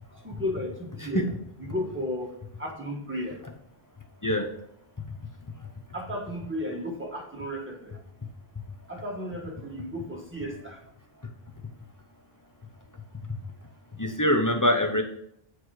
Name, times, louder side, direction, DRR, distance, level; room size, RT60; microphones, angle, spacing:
voice 1, 0.2-1.3 1.6-2.3 2.6-3.4 5.9-8.0 8.9-10.8, left 1 dB, 10° right, -1 dB, 1.3 m, -34 dB
voice 2, 14.0-15.0, equal, 20° left, 4 dB, 0.6 m, -24 dB
7.0 x 4.5 x 4.7 m, 0.69 s
omnidirectional pair, 1.0 m